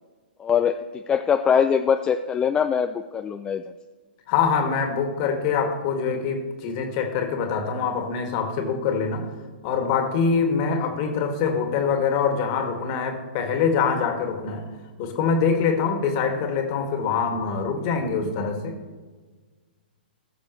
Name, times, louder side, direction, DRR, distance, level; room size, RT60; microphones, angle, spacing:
voice 1, 0.4-3.6, left 7 dB, 15° left, 7 dB, 0.4 m, -22 dB
voice 2, 4.3-9.3 9.6-14.6 15.0-18.7, left 5 dB, 40° left, 4 dB, 2.0 m, -24 dB
20.5 x 6.9 x 3.1 m, 1.4 s
figure-of-eight pair, 115°, 5 cm